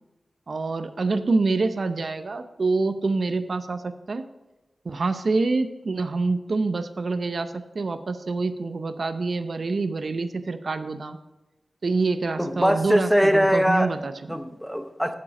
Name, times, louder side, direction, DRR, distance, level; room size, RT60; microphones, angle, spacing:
voice 1, 0.5-4.2 4.8-11.2 11.8-14.1, right 3 dB, 60° right, 10 dB, 0.6 m, -26 dB
voice 2, 12.4-13.9 14.3-15.1, equal, ahead, 8 dB, 0.8 m, -21 dB
8.3 x 7.5 x 5.0 m, 1.1 s
wide cardioid pair, 80°, 0 cm